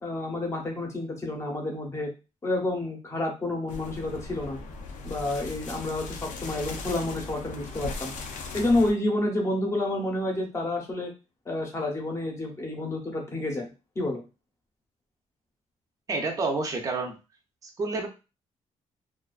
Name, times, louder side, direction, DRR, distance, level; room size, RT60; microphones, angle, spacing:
voice 1, 0.0-2.1 2.4-4.6 5.0-8.1 8.5-11.1 11.5-13.7 14.0-14.2, left 2 dB, 20° left, 1 dB, 0.7 m, -29 dB
sound 1, 3.7-8.9, left 3 dB, 85° left, 0.5 m, -38 dB
voice 2, 16.1-17.1 17.6-18.1, right 3 dB, 25° right, 3 dB, 0.5 m, -29 dB
2.4 x 2.2 x 2.3 m, 0.29 s
cardioid pair, 160°, 13 cm